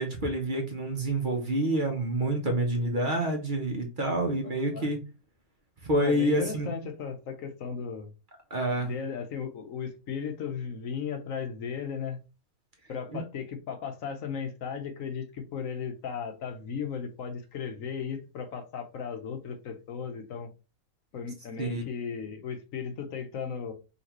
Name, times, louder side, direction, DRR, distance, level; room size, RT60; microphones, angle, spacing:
voice 1, 0.0-5.0 5.8-6.7 8.5-8.9 13.1-13.2 21.6-21.8, right 1 dB, 40° right, 2 dB, 1.0 m, -28 dB
voice 2, 6.0-8.1 8.8-12.2 12.9-20.5 21.1-23.7, left 6 dB, 70° left, 6 dB, 1.2 m, -36 dB
5.5 x 2.9 x 3.0 m, 0.30 s
omnidirectional pair, 1.5 m